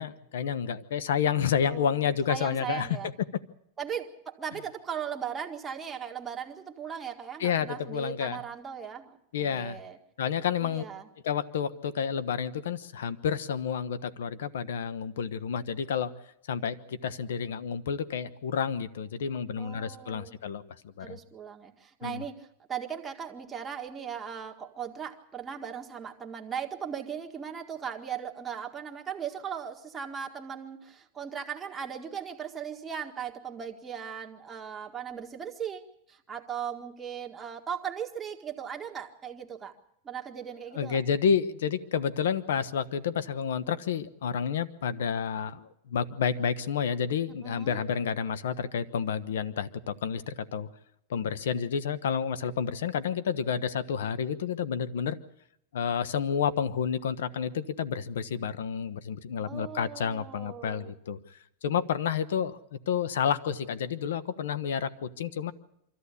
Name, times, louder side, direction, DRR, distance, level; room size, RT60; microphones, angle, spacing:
voice 1, 0.0-2.9 7.4-8.4 9.3-9.8 10.2-10.9 11.2-16.1 16.5-21.2 22.0-22.2 40.7-50.7 51.1-55.2 55.7-61.2 61.6-62.6 62.9-65.5, left 7 dB, 90° left, 14 dB, 1.0 m, -30 dB
voice 2, 1.6-3.1 3.8-10.0 10.6-11.1 19.6-20.3 21.0-35.8 36.1-39.7 40.0-41.0 47.4-47.8 59.5-60.9, right 8 dB, 15° right, 1 dB, 1.7 m, -38 dB
24.5 x 14.0 x 8.3 m, 0.79 s
supercardioid pair, 140°, 0 cm